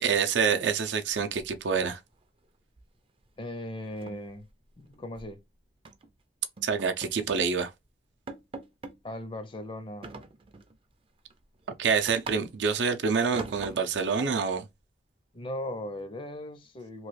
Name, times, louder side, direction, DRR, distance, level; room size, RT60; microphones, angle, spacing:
voice 1, 0.0-2.0 6.6-7.7 11.8-14.7, right 6 dB, 85° right, 0.5 m, -27 dB
sound 1, 1.1-1.9 2.2-2.4 2.8-3.0 3.3-3.4 3.8-5.3 5.8-6.1 6.6-7.5 7.8-7.9 8.3-9.0 10.0-10.8 11.2-12.8 13.3-14.1, right 3 dB, 30° right, 0.4 m, -44 dB
voice 2, 3.4-4.5 4.8-5.4 9.0-10.1 15.3-17.1, left 1 dB, 30° left, 0.5 m, -38 dB
3.0 x 2.3 x 3.1 m
head